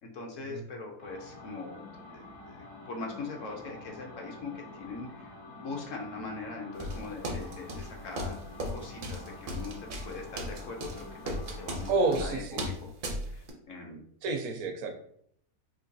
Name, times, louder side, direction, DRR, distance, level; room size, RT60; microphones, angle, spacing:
voice 1, 0.0-1.9 2.1-8.4 8.6-11.1 11.5-12.9 13.3-14.0, left 3 dB, 65° left, 1 dB, 0.9 m, -41 dB
sound 1, 1.0-12.0, left 2 dB, 85° left, 1.3 m, -48 dB
sound 2, 6.8-13.5, equal, 60° right, 0.5 m, -36 dB
voice 2, 11.9-12.7 14.2-14.9, right 3 dB, 80° right, 4 dB, 1.0 m, -29 dB
3.8 x 2.8 x 2.6 m, 0.66 s
omnidirectional pair, 1.6 m